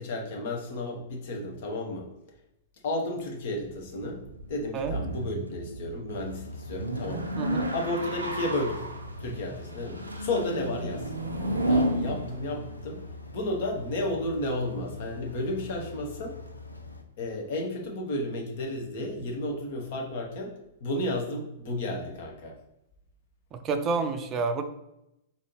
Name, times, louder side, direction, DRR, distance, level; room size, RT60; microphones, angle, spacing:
voice 1, 0.0-2.1 2.8-4.2 4.5-7.3 7.7-8.8 9.2-11.1 11.7-13.0 13.3-16.4 17.2-20.5 20.8-22.5, left 1 dB, 55° left, 1 dB, 1.0 m, -32 dB
sound 1, 3.6-13.2, right 1 dB, 90° right, 0.5 m, -33 dB
sound 2, 6.1-17.0, left 2 dB, 90° left, 0.4 m, -44 dB
voice 2, 7.4-7.7 23.5-24.6, right 4 dB, 30° right, 7 dB, 0.4 m, -29 dB
4.1 x 2.7 x 3.0 m, 0.85 s
figure-of-eight pair, 105°, 0 cm